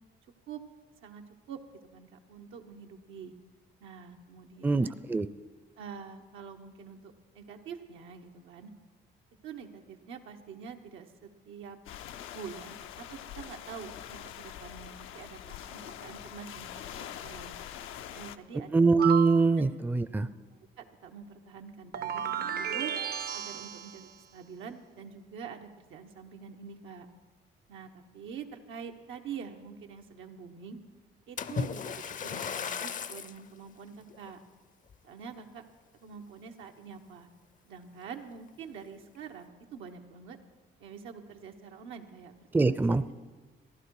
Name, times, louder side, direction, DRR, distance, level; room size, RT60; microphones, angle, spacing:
voice 1, 1.0-1.6 1.9-3.3 3.8-4.9 5.8-8.7 9.4-11.8 12.3-17.5 18.1-18.8 19.6-19.7 20.1-20.3 20.8-22.9 23.3-27.1 27.7-30.8 31.3-34.4 35.0-35.6 36.0-37.3 37.7-40.4 40.8-43.1, right 7 dB, 90° right, 4 dB, 1.1 m, -46 dB
voice 2, 4.6-5.3 18.7-20.3 42.5-43.1, right 3 dB, 10° right, 14 dB, 0.4 m, -24 dB
sound 1, 11.9-18.4, left 10 dB, 85° left, 0.6 m, -44 dB
sound 2, 19.0-19.5 21.9-24.1, right 8 dB, 50° right, 0.6 m, -33 dB
Splash splatter, 31.4-33.4 34.1-34.3 34.9-35.0, left 6 dB, 40° left, 0.5 m, -35 dB
15.0 x 11.0 x 4.8 m, 1.4 s
cardioid pair, 90°, 20 cm